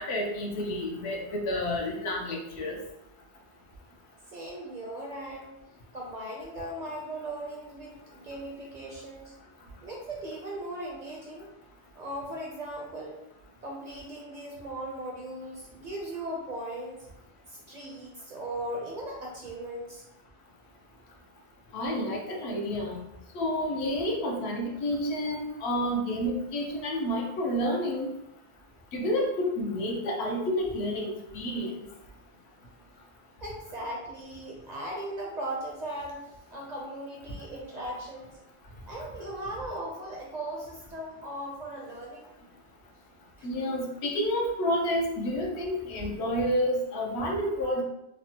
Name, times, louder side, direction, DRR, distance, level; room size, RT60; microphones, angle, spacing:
voice 1, 0.0-2.8 21.7-23.0 23.3-28.1 28.9-31.8 43.4-47.8, equal, 80° left, 0 dB, 0.9 m, -29 dB
voice 2, 4.3-5.6 5.9-9.3 9.8-11.5 11.9-13.2 13.6-17.1 17.5-20.1 33.4-38.4 38.8-42.3 43.4-43.5, right 1 dB, 55° right, -2 dB, 0.5 m, -38 dB
3.3 x 2.0 x 2.7 m, 0.87 s
omnidirectional pair, 1.1 m